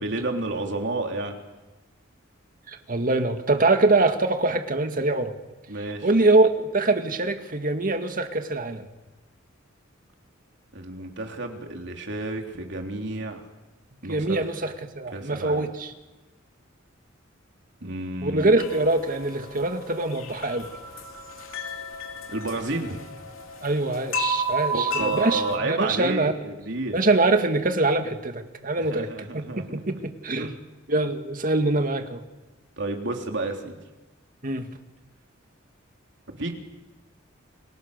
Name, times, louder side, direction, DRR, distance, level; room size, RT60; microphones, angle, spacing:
voice 1, 0.0-1.4 5.7-6.1 10.7-13.5 14.0-14.5 15.1-15.7 17.8-18.7 22.3-23.0 24.7-27.0 28.8-29.8 30.4-30.5 32.8-33.8 36.4-36.5, right 2 dB, 60° right, 3 dB, 3.4 m, -31 dB
voice 2, 2.7-5.4 6.0-8.9 14.1-15.9 18.2-20.7 23.6-26.3 26.9-30.5 30.9-32.2 34.4-34.7, right 2 dB, 45° right, 7 dB, 2.0 m, -24 dB
sound 1, 18.6-25.6, right 1 dB, 85° left, 3.0 m, -32 dB
29.5 x 23.0 x 6.7 m, 1.1 s
head